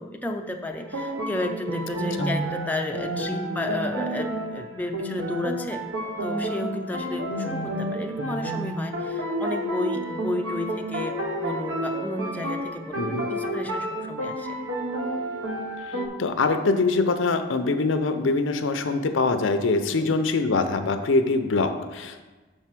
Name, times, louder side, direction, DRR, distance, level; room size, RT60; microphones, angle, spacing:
voice 1, 0.0-5.8 6.2-14.6 19.9-20.1, left 1 dB, 10° left, 3 dB, 0.4 m, -32 dB
sound 1, 0.7-16.1, right 1 dB, 80° right, 1.1 m, -30 dB
voice 2, 12.9-13.3 15.9-22.2, left 3 dB, 75° left, 8 dB, 0.6 m, -24 dB
6.4 x 4.5 x 5.9 m, 1.2 s
head